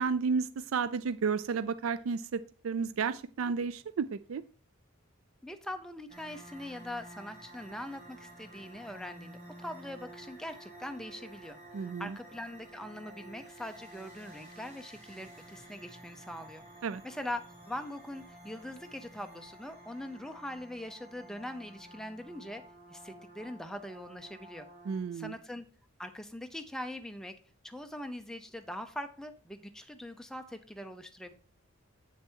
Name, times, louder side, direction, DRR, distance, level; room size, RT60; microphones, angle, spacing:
voice 1, 0.0-4.4 11.7-12.2 16.8-17.0 24.9-25.3, right 5 dB, 75° right, 14 dB, 0.4 m, -32 dB
voice 2, 5.4-16.6 17.0-22.6 22.9-24.7 25.1-25.7 26.0-27.3 27.6-31.3, left 1 dB, 5° left, 7 dB, 0.7 m, -42 dB
sound 1, 6.1-25.0, right 1 dB, 30° right, 4.3 m, -52 dB
7.9 x 6.8 x 4.6 m, 0.41 s
head